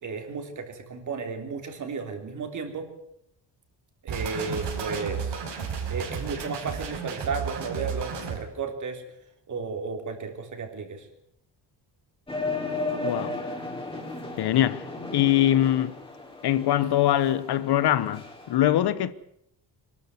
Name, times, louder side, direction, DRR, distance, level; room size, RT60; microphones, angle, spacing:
voice 1, 0.0-2.9 4.0-5.4 5.9-9.0 9.5-11.1, right 4 dB, 45° right, 3.6 m, -33 dB
sound 1, 4.1-8.4, right 6 dB, 75° right, 5.0 m, -33 dB
sound 2, 12.3-18.6, left 2 dB, 10° left, 3.6 m, -35 dB
voice 2, 13.0-13.4 14.4-14.8 15.1-16.0 16.4-19.1, left 12 dB, 65° left, 1.0 m, -23 dB
24.0 x 12.5 x 9.5 m
cardioid pair, 165°, 42 cm